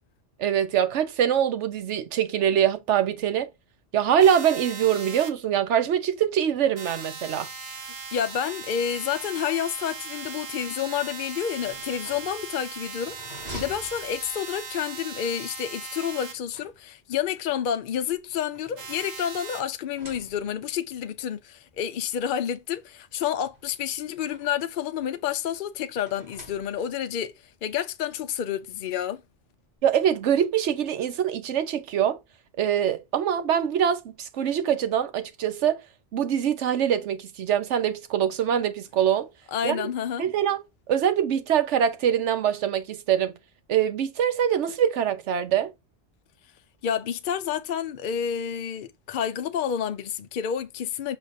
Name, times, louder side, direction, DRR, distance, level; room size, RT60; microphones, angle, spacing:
voice 1, 0.4-3.5 3.9-7.5 29.8-32.2 32.6-35.8 36.1-39.3 39.6-39.8 40.2-43.4 43.7-45.7, right 9 dB, 90° right, 1.0 m, -24 dB
sound 1, 4.2-5.3 6.8-16.3 18.8-19.6, right 5 dB, 60° right, 1.0 m, -39 dB
voice 2, 8.1-27.3 27.6-29.2 39.5-40.3 46.8-51.2, left 9 dB, 60° left, 0.6 m, -29 dB
sound 2, 11.4-14.7 16.0-17.2 18.0-19.4 19.8-20.7 21.7-21.8 22.1-22.2 23.4-24.7 25.9-27.1, right 1 dB, 35° right, 2.9 m, -47 dB
6.4 x 5.9 x 2.6 m
omnidirectional pair, 1.2 m